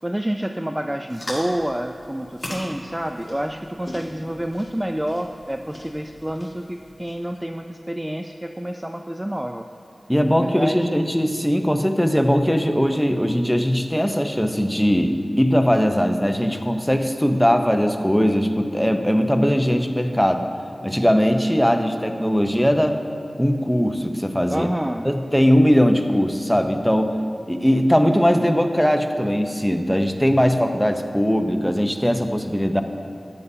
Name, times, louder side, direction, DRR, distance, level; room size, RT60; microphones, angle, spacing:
voice 1, 0.0-9.7 10.3-10.9 24.5-25.1, right 1 dB, 15° right, 5 dB, 0.4 m, -28 dB
sound 1, 1.1-7.4, left 1 dB, 35° left, 2.0 m, -39 dB
voice 2, 10.1-20.5 20.8-23.0 23.4-24.7 25.0-27.1 27.5-32.8, equal, 5° left, 5 dB, 0.7 m, -20 dB
13.5 x 9.4 x 2.7 m, 2.4 s
wide cardioid pair, 50°, 0 cm